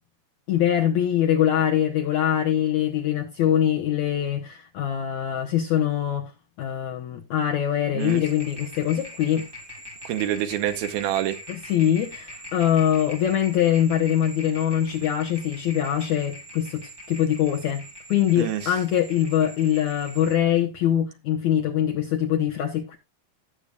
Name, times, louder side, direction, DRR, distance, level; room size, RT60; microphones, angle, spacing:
voice 1, 0.5-6.3 6.6-9.5 11.5-23.0, left 10 dB, 75° left, 1.8 m, -23 dB
sound 1, 8.0-20.4, equal, 20° right, 0.6 m, -42 dB
voice 2, 10.0-11.4 18.4-18.7, right 12 dB, 80° right, 2.6 m, -27 dB
18.0 x 6.7 x 2.3 m
omnidirectional pair, 4.4 m